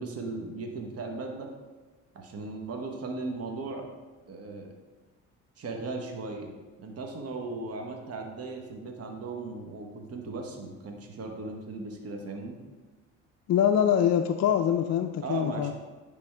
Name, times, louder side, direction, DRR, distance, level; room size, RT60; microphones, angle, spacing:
voice 1, 0.0-1.5 2.1-3.9 4.3-4.7 5.6-6.5 6.8-12.6 15.2-15.7, right 3 dB, 40° right, 2 dB, 1.1 m, -37 dB
voice 2, 13.5-15.7, left 9 dB, 45° left, 5 dB, 0.4 m, -24 dB
9.9 x 3.6 x 3.3 m, 1.3 s
supercardioid pair, 70°, 36 cm